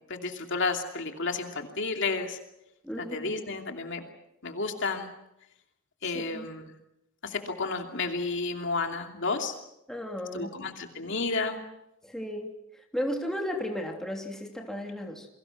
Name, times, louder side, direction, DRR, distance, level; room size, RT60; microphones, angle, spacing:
voice 1, 0.1-2.4 3.0-4.0 4.4-5.1 6.0-6.6 7.2-9.6 10.3-11.6, left 3 dB, 60° left, 4 dB, 2.8 m, -31 dB
voice 2, 2.8-3.3 6.1-6.4 9.9-10.5 12.0-12.5 12.9-15.3, equal, 5° left, 1 dB, 3.1 m, -34 dB
29.5 x 23.0 x 6.0 m, 0.86 s
head